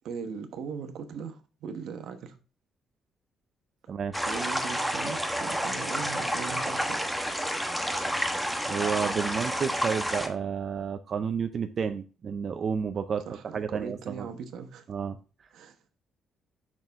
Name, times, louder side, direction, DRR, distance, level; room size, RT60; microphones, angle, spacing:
voice 1, 0.0-2.4 4.2-7.1 13.3-14.8 15.5-15.8, right 6 dB, 75° right, 1.1 m, -39 dB
sound 1, 4.1-10.3, equal, ahead, 1.0 m, -30 dB
voice 2, 8.7-13.2 13.5-14.3 14.9-15.2, right 6 dB, 45° right, 0.5 m, -31 dB
6.5 x 6.2 x 3.5 m
cardioid pair, 130°, 0 cm